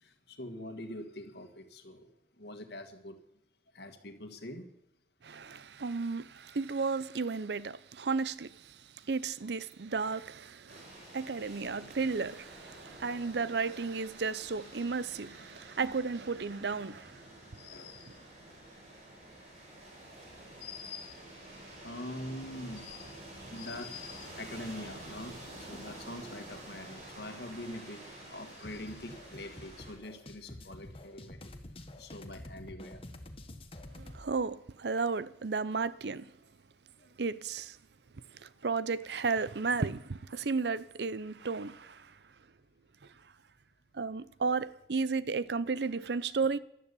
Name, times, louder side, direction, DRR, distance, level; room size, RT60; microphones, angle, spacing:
voice 1, 0.0-2.1 2.4-3.1 3.7-4.7 17.6-18.3 20.3-21.2 21.8-23.2 23.5-31.5 32.0-33.0, left 1 dB, 65° left, 1.8 m, -44 dB
voice 2, 5.2-8.8 9.1-17.1 34.0-36.3 37.2-37.8 38.4-42.1 43.9-46.6, right 4 dB, 70° right, 0.7 m, -33 dB
sound 1, 10.7-29.9, right 1 dB, 40° right, 5.6 m, -49 dB
sound 2, 28.6-34.3, left 1 dB, 30° left, 1.4 m, -48 dB
12.5 x 12.0 x 8.3 m
head